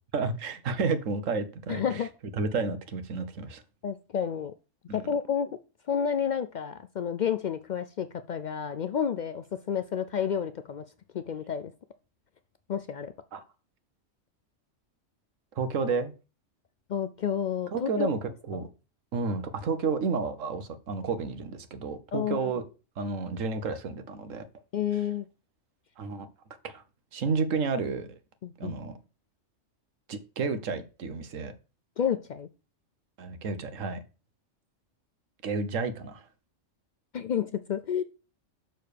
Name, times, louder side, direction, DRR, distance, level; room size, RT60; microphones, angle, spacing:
voice 1, 0.1-2.0 2.4-3.6 4.9-5.1 13.3-13.4 15.5-16.1 17.7-18.7 19.1-22.6 23.0-24.4 26.0-26.3 26.6-26.8 27.1-28.2 28.6-29.0 30.1-31.5 33.2-34.0 35.4-36.3, right 4 dB, 80° right, 1.3 m, -31 dB
voice 2, 1.7-2.1 3.8-4.5 4.9-5.5 5.9-10.8 11.1-11.7 12.7-13.1 16.9-18.1 18.5-18.7 22.1-22.4 24.7-25.3 28.4-28.8 32.0-32.5 37.1-38.0, left 8 dB, 75° left, 0.4 m, -30 dB
6.7 x 3.9 x 6.5 m
omnidirectional pair, 1.3 m